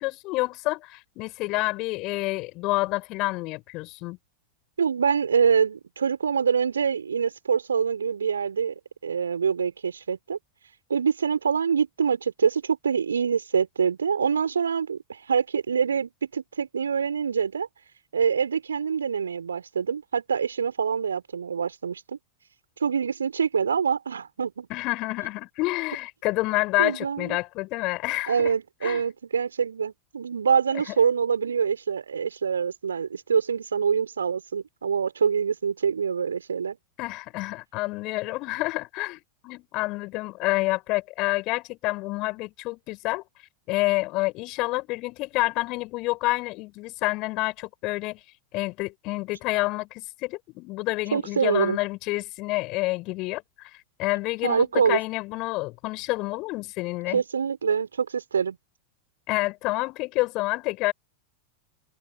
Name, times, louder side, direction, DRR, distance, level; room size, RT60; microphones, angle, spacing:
voice 1, 0.0-4.2 24.7-28.5 28.8-29.0 30.7-30.9 37.0-43.2 43.7-48.2 48.5-53.7 54.0-57.2 59.3-60.9, left 22 dB, 40° left, 5.0 m, -28 dB
voice 2, 4.8-8.7 9.0-10.4 10.9-17.7 18.1-22.2 22.8-24.7 26.8-27.4 28.3-36.8 51.1-51.8 54.4-55.0 57.1-58.6, right 6 dB, 70° right, 4.6 m, -25 dB
figure-of-eight pair, 90°, 0 cm